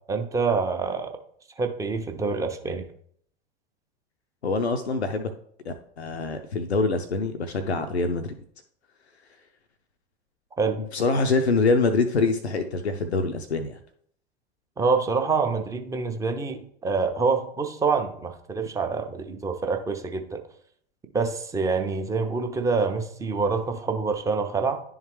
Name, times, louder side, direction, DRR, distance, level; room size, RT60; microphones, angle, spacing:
voice 1, 0.1-1.1 1.6-2.8 10.6-10.8 14.8-20.4 21.1-24.8, right 4 dB, 10° right, 5 dB, 0.5 m, -26 dB
voice 2, 4.4-5.3 5.7-8.3 10.8-13.8, left 3 dB, 85° left, 6 dB, 0.5 m, -25 dB
10.5 x 3.7 x 3.0 m, 0.64 s
figure-of-eight pair, 90°, 32 cm